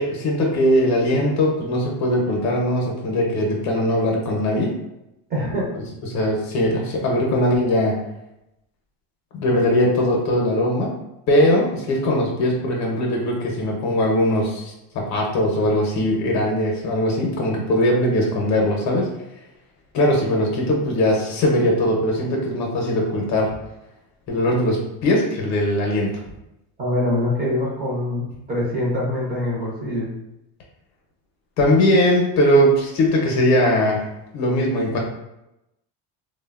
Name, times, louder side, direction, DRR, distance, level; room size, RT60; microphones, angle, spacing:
voice 1, 0.0-4.8 5.7-5.8 6.1-8.0 9.3-11.0 11.3-19.1 19.9-23.5 24.3-26.2 31.6-34.1 34.3-35.0, left 1 dB, 45° left, 0 dB, 0.6 m, -20 dB
voice 2, 5.3-5.7 26.8-30.1, left 1 dB, 25° right, -5 dB, 0.7 m, -24 dB
3.2 x 2.1 x 2.3 m, 0.88 s
cardioid pair, 165°, 40 cm